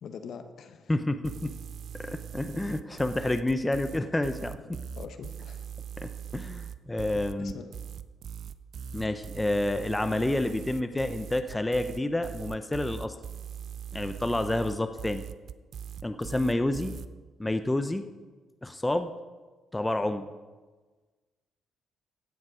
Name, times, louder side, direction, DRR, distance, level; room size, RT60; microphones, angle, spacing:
voice 1, 0.0-1.0 4.9-5.7 7.4-7.7, left 6 dB, 65° left, 8 dB, 0.9 m, -43 dB
voice 2, 0.9-1.5 1.9-4.8 6.0-7.5 8.9-13.1 13.9-15.3 16.0-17.0 17.4-18.1 18.6-19.1 19.7-20.3, left 1 dB, 10° left, 8 dB, 0.6 m, -29 dB
sound 1, 1.2-17.1, right 8 dB, 60° right, 0.4 m, -41 dB
16.0 x 7.2 x 5.0 m, 1.3 s
cardioid pair, 90°, 0 cm